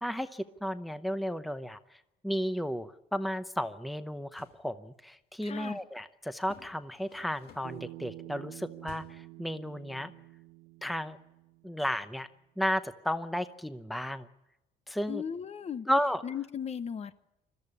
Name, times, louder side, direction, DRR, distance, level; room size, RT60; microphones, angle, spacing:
voice 1, 0.0-10.1 10.8-11.2 11.6-12.3 12.6-14.3 14.9-15.2 15.9-16.2, equal, ahead, 11 dB, 0.8 m, -33 dB
sound 1, 4.2-4.7 6.4-7.9 8.8-9.3, left 6 dB, 70° left, 2.5 m, -54 dB
voice 2, 5.4-5.8 15.1-15.9 16.2-17.1, left 8 dB, 40° left, 13 dB, 0.9 m, -37 dB
Bass guitar, 7.6-11.9, right 18 dB, 85° right, 1.0 m, -48 dB
22.0 x 13.5 x 9.8 m, 0.92 s
cardioid pair, 110°, 17 cm